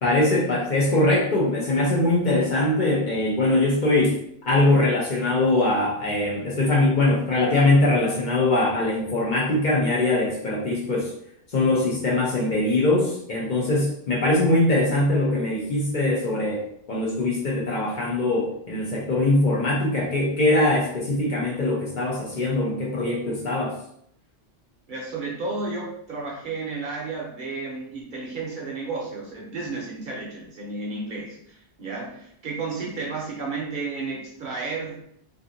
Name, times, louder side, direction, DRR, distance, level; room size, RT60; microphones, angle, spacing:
voice 1, 0.0-4.2 4.4-11.1 11.5-23.8, left 2 dB, 50° left, -4 dB, 0.7 m, -22 dB
voice 2, 24.9-35.0, right 3 dB, 55° right, -3 dB, 0.7 m, -32 dB
2.5 x 2.5 x 2.6 m, 0.69 s
omnidirectional pair, 1.1 m